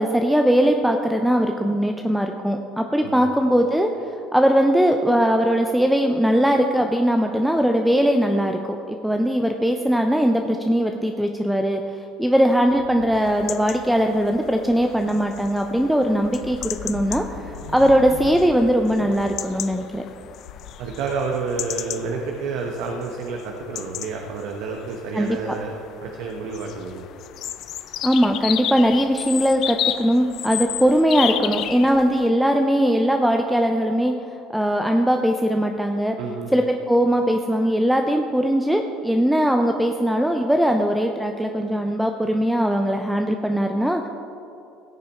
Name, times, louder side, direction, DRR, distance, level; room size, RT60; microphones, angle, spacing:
voice 1, 0.0-3.9 4.3-20.0 25.1-25.3 28.0-34.1 34.5-36.1 36.5-44.1, equal, ahead, 4 dB, 0.7 m, -20 dB
sound 1, 12.7-22.9, left 6 dB, 90° left, 1.1 m, -42 dB
sound 2, 13.1-32.3, left 11 dB, 60° left, 0.5 m, -33 dB
voice 2, 20.8-25.7 26.0-27.1 36.2-36.5, right 4 dB, 70° right, 2 dB, 1.0 m, -29 dB
16.0 x 6.8 x 4.5 m, 2.7 s
hypercardioid pair, 75°, 0 cm